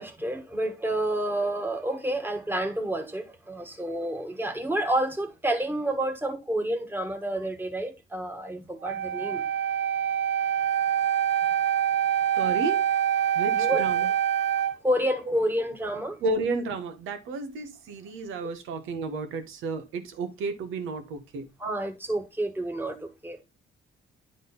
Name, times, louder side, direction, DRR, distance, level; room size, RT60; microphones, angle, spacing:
voice 1, 0.0-9.5 13.5-13.8 14.8-16.2 21.6-23.4, right 1 dB, 10° right, 1.6 m, -29 dB
Wind instrument woodwind instrument, 8.8-14.8, right 10 dB, 65° right, 0.6 m, -25 dB
voice 2, 12.4-12.8 13.3-14.1 16.2-21.5, right 3 dB, 85° right, 1.4 m, -32 dB
9.9 x 3.9 x 3.9 m
cardioid pair, 90°, 20 cm